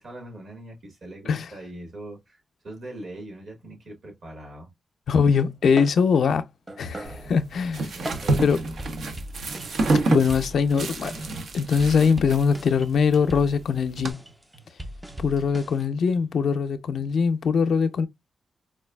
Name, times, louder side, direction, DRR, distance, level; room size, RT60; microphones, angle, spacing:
voice 1, 0.0-4.7 7.9-8.6, right 1 dB, 65° right, 1.6 m, -41 dB
voice 2, 5.1-6.4 6.8-7.9 8.4-8.6 10.1-11.1 11.5-14.2 15.2-18.1, left 6 dB, 80° left, 0.5 m, -22 dB
sound 1, 5.1-8.5 9.6-11.7 12.8-13.5 14.0-15.5 16.1-16.3, right 1 dB, 35° right, 0.9 m, -42 dB
sound 2, 7.0-14.1, right 2 dB, 80° right, 0.7 m, -29 dB
sound 3, 8.0-9.9 10.3-11.4 11.7-12.9 13.3-15.9, equal, 10° right, 0.4 m, -40 dB
4.5 x 2.3 x 2.2 m
wide cardioid pair, 100°, 0 cm